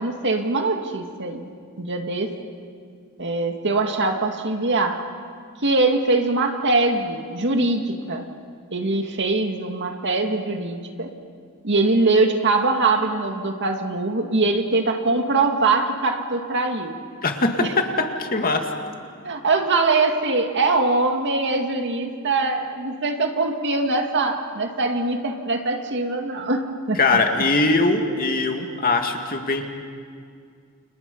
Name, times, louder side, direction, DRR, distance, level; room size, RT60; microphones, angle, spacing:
voice 1, 0.0-1.5 1.8-2.3 3.2-5.1 5.6-8.3 8.7-11.1 11.6-17.0 17.6-17.7 19.2-27.0, right 3 dB, 55° right, 4 dB, 2.2 m, -22 dB
voice 2, 17.2-18.7 27.0-29.7, left 3 dB, 40° left, 3 dB, 2.3 m, -21 dB
29.5 x 29.5 x 5.5 m, 2.2 s
head